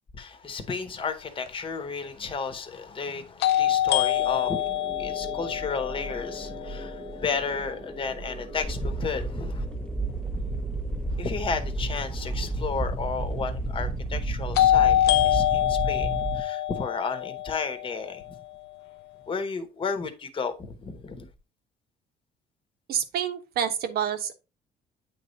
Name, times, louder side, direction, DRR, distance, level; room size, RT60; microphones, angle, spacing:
voice 1, 0.2-4.7 5.0-9.6 11.2-18.3 19.3-21.3, left 5 dB, 30° left, 1.1 m, -33 dB
sound 1, 1.5-1.6 3.4-7.3 14.6-18.6, left 12 dB, 75° left, 0.5 m, -25 dB
sound 2, 4.1-14.6, right 1 dB, 20° right, 1.2 m, -42 dB
sound 3, 8.6-16.4, right 2 dB, 5° left, 0.8 m, -31 dB
voice 2, 22.9-24.3, right 8 dB, 65° right, 1.0 m, -28 dB
8.7 x 3.3 x 3.9 m
cardioid pair, 110°, 17 cm